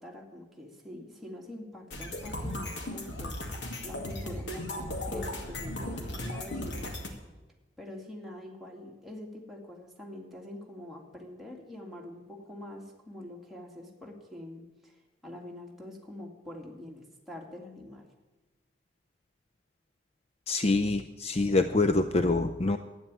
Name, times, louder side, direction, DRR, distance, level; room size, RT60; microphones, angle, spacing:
voice 1, 0.0-7.0 7.8-15.0 15.2-18.1, left 1 dB, ahead, -2 dB, 2.2 m, -45 dB
sound 1, 1.9-7.1, left 1 dB, 90° left, 2.2 m, -36 dB
voice 2, 20.5-22.8, left 3 dB, 35° left, 9 dB, 0.5 m, -25 dB
12.5 x 9.5 x 8.9 m, 1.1 s
head